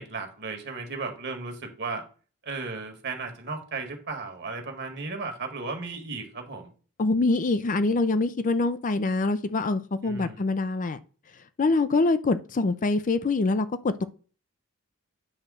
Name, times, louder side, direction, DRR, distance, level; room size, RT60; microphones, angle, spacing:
voice 1, 0.0-2.1 2.4-6.7 10.0-10.5, right 4 dB, 55° right, 1.6 m, -35 dB
voice 2, 7.0-11.0 11.6-14.1, left 3 dB, 40° left, 0.5 m, -24 dB
8.6 x 3.1 x 6.2 m
head